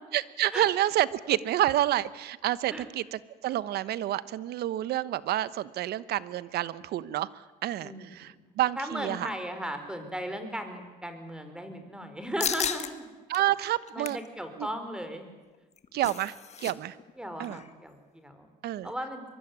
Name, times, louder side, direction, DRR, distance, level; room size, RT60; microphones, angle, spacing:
voice 1, 0.1-9.3 13.3-14.2 14.6-14.7 15.9-17.0 17.4-17.6 18.6-18.9, right 13 dB, 70° right, 17 dB, 1.1 m, -29 dB
voice 2, 7.8-8.4 8.8-13.0 13.6-15.3 17.2-18.5 18.8-19.3, equal, 5° right, 7 dB, 4.9 m, -37 dB
sound 1, 12.4-12.9 13.3-13.4 13.8-14.3 15.5-16.7 17.0-17.1 17.4-17.7, left 7 dB, 40° left, 1.7 m, -33 dB
24.0 x 23.0 x 9.7 m, 1.2 s
cardioid pair, 110°, 17 cm